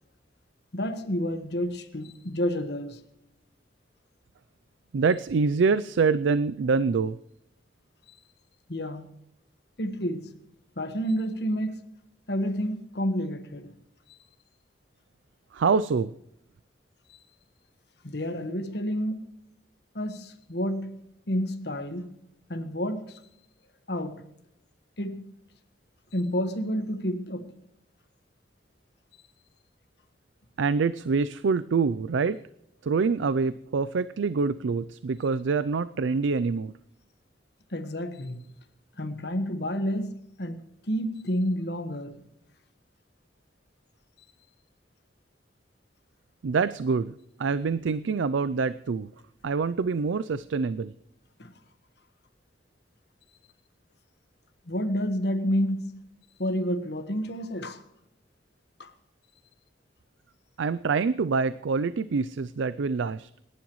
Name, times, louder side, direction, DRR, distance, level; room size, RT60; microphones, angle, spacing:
voice 1, 0.7-3.0 8.7-9.1 9.8-10.3 10.8-11.8 12.3-13.8 14.1-14.2 18.0-19.2 19.9-21.0 21.3-22.1 22.5-23.2 23.9-24.2 25.0-25.3 26.1-27.5 37.7-38.5 39.0-42.2 51.4-51.5 54.7-56.0 56.4-57.8 58.8-58.9, equal, 60° left, 1.4 m, -30 dB
voice 2, 4.9-7.2 15.5-16.1 30.6-32.4 32.8-36.7 46.4-47.1 47.4-49.1 49.4-50.9 60.6-63.3, right 4 dB, 90° right, 0.4 m, -25 dB
27.5 x 11.0 x 3.1 m
head